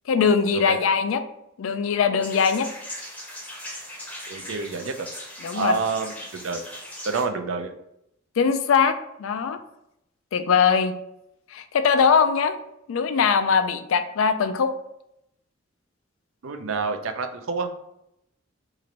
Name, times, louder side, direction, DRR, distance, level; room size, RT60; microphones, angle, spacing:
voice 1, 0.1-1.3 1.6-2.7 5.4-5.7 8.4-9.6 10.3-10.9 11.5-12.6 12.9-14.7, left 6 dB, 80° left, 9 dB, 0.4 m, -21 dB
sound 1, 2.2-7.3, left 1 dB, 5° left, 0.7 m, -39 dB
voice 2, 4.3-5.1 5.5-6.6 7.0-7.7 16.4-17.7, right 4 dB, 80° right, 6 dB, 0.5 m, -28 dB
3.0 x 2.5 x 4.1 m, 0.79 s
head